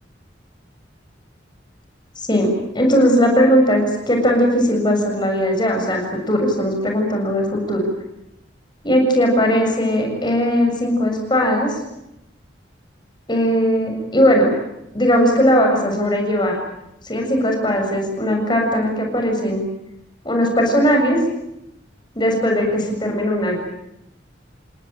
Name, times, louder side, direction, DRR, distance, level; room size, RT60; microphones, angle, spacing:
voice 1, 2.3-7.8 8.8-11.8 13.3-14.5 14.9-16.6 17.0-19.6 20.2-21.2 22.2-23.6, equal, 25° left, 2 dB, 7.2 m, -18 dB
29.5 x 18.5 x 8.9 m, 0.86 s
head